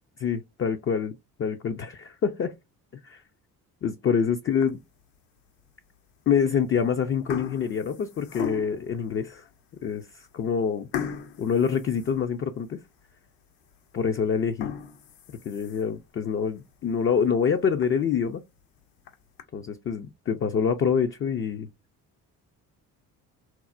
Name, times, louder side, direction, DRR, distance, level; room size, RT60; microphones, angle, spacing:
voice 1, 0.2-1.1 1.4-2.5 3.0-3.2 3.8-4.8 6.3-9.5 9.8-10.9 11.4-12.8 13.9-14.7 15.4-18.4 19.5-21.7, left 7 dB, 30° left, 0.4 m, -26 dB
sound 1, 4.5-5.0 5.6-5.7 6.5-6.8 7.1-8.9 9.5-9.6 10.0-10.1 10.9-12.7 13.1-13.2 13.7-13.8 14.4-16.0 16.5-16.6 17.0-17.1 17.4-17.5 17.8-17.9 18.8-19.4, left 8 dB, 65° left, 0.8 m, -37 dB
4.2 x 2.0 x 2.4 m
hypercardioid pair, 55°, 44 cm